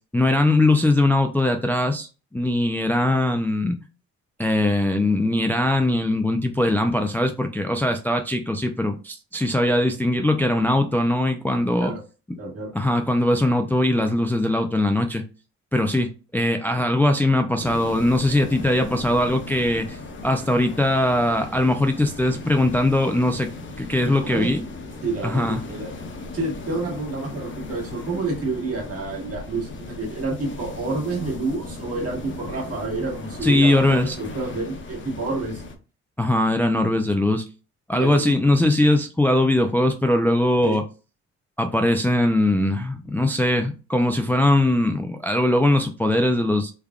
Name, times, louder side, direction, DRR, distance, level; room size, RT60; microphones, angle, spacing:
voice 1, 0.1-3.8 4.4-11.9 12.7-15.2 15.7-23.5 23.8-24.6 25.2-25.6 33.4-34.2 36.2-37.4 37.9-40.8 41.6-46.7, left 1 dB, 5° left, 0.4 m, -21 dB
voice 2, 12.4-12.8 24.0-24.5 25.0-25.9 26.3-35.6 37.9-38.3 40.6-40.8, right 3 dB, 50° right, 1.8 m, -29 dB
sound 1, 17.6-35.8, left 3 dB, 40° left, 0.9 m, -37 dB
3.5 x 3.4 x 2.3 m
cardioid pair, 90°, 30 cm